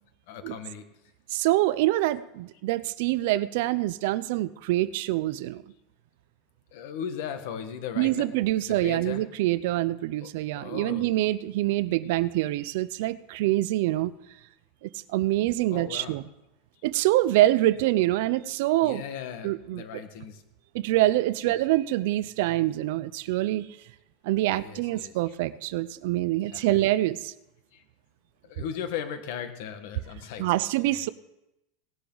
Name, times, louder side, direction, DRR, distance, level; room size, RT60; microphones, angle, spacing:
voice 1, 0.3-0.8 6.7-8.3 8.6-9.2 10.2-10.3 10.6-11.1 15.7-16.2 18.8-20.4 21.4-21.6 24.5-25.1 26.5-26.8 28.5-31.0, left 8 dB, 55° left, 8 dB, 1.5 m, -37 dB
voice 2, 1.3-5.6 8.0-14.1 14.8-16.2 16.8-19.0 19.4-19.8 20.7-23.7 24.2-27.3 30.4-31.1, right 16 dB, 55° right, 17 dB, 0.5 m, -25 dB
18.0 x 11.5 x 3.9 m, 0.90 s
supercardioid pair, 175°, 0 cm